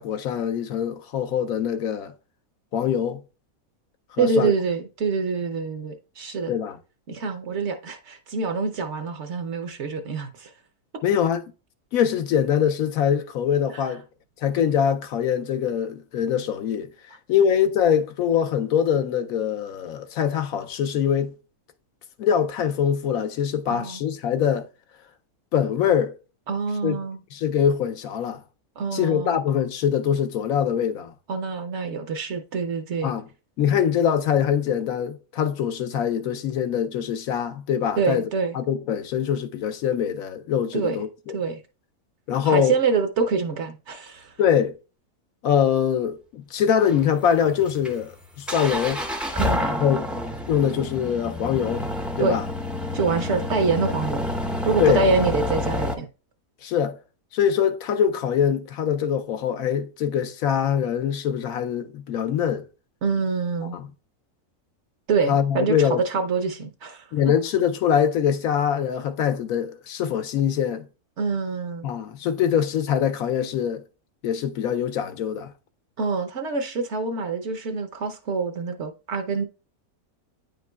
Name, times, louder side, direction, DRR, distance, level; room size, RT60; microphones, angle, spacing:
voice 1, 0.0-2.1 2.7-3.2 4.2-4.5 6.5-6.8 11.0-11.4 11.9-14.0 14.4-16.9 17.3-21.3 22.2-24.7 25.5-26.1 26.8-27.0 27.3-28.4 28.9-31.1 33.0-33.2 33.6-38.2 38.5-41.4 42.3-42.8 44.4-44.7 45.4-49.0 49.6-50.2 50.5-51.9 52.2-52.4 54.8-55.1 56.6-57.0 57.3-62.7 63.7-63.9 65.3-66.0 67.1-70.9 71.8-73.8 74.2-75.5, left 8 dB, 75° left, 1.0 m, -23 dB
voice 2, 4.2-6.6 7.1-10.5 23.7-24.0 26.5-27.2 28.8-29.4 31.3-33.1 38.0-38.6 40.7-41.0 41.3-41.6 42.4-44.3 49.3-49.7 52.2-52.4 52.9-54.3 54.6-56.1 63.0-63.8 65.1-67.1 71.2-71.9 76.0-79.4, right 4 dB, 60° right, 0.9 m, -26 dB
sound 1, 46.8-55.9, left 1 dB, ahead, 0.4 m, -28 dB
9.4 x 5.2 x 2.3 m
omnidirectional pair, 1.5 m